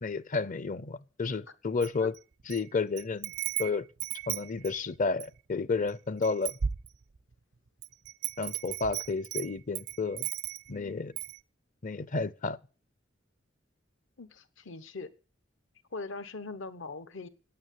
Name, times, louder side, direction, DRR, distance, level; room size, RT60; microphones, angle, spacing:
voice 1, 0.0-2.1 2.5-3.3 3.6-3.9 4.3-6.6 8.4-10.3 10.7-11.1 11.8-12.6, left 4 dB, 45° left, 0.6 m, -31 dB
Wind chime, 1.8-2.6 3.0-5.4 5.9-6.0 6.2-7.3 7.8-10.8 11.2-11.4, right 10 dB, 60° right, 0.5 m, -35 dB
voice 2, 10.7-11.2 14.2-15.1 15.9-17.3, left 3 dB, 70° left, 1.1 m, -41 dB
9.2 x 8.9 x 9.1 m
head